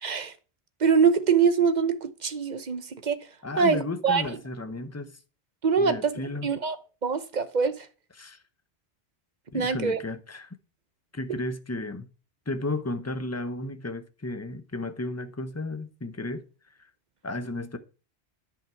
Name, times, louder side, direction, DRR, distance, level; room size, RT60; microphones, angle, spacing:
voice 1, 0.0-0.3 0.8-3.2 3.6-3.8 4.0-4.2 5.6-6.1 6.4-6.8 7.0-7.9 9.5-10.0, right 5 dB, 40° right, 1.0 m, -23 dB
voice 2, 3.4-5.2 5.8-6.5 8.2-8.4 9.5-10.6 11.1-12.1 12.5-16.4 16.8-16.9 17.2-17.8, left 2 dB, 15° left, 0.8 m, -33 dB
10.5 x 5.8 x 4.5 m
omnidirectional pair, 1.2 m